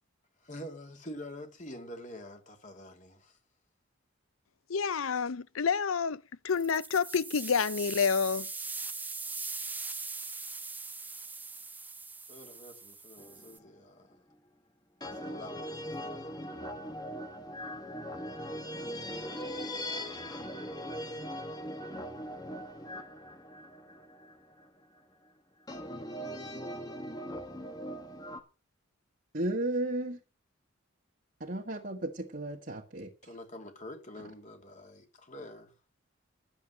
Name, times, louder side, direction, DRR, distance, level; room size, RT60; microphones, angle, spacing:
voice 1, 0.4-3.4 12.3-14.1 15.1-16.2 33.2-35.7, left 1 dB, 35° left, 2.8 m, -46 dB
voice 2, 4.7-8.5, left 6 dB, 85° left, 0.6 m, -29 dB
sound 1, 6.5-13.6, right 4 dB, 10° right, 0.7 m, -41 dB
sound 2, 13.2-13.7 15.0-24.6 25.7-28.4, equal, 20° left, 1.5 m, -40 dB
voice 3, 29.3-30.2 31.4-33.1, right 1 dB, 45° right, 1.7 m, -34 dB
11.5 x 8.1 x 7.7 m
head